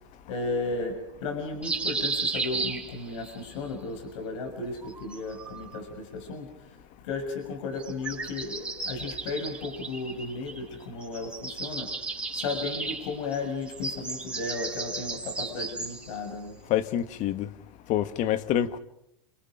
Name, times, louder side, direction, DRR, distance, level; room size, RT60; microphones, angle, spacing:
voice 1, 0.3-6.5 7.0-11.9 12.3-16.6, left 3 dB, 70° left, 6.6 m, -34 dB
sound 1, 1.6-3.4 4.8-5.8 7.8-10.7 11.0-16.2, right 3 dB, 5° right, 5.7 m, -34 dB
voice 2, 16.7-17.5 17.9-18.8, left 11 dB, 45° left, 1.8 m, -26 dB
28.5 x 28.5 x 5.2 m
hypercardioid pair, 105°, 17 cm